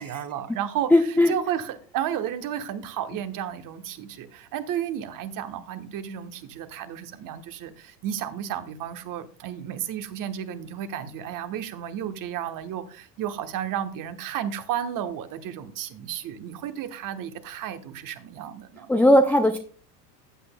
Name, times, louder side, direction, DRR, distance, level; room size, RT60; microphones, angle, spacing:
voice 1, 0.0-0.9 1.3-18.9, right 10 dB, 40° right, 1.2 m, -32 dB
voice 2, 0.9-1.3 18.9-19.6, left 1 dB, 5° left, 0.4 m, -17 dB
15.0 x 7.9 x 2.2 m
hypercardioid pair, 90°, 49 cm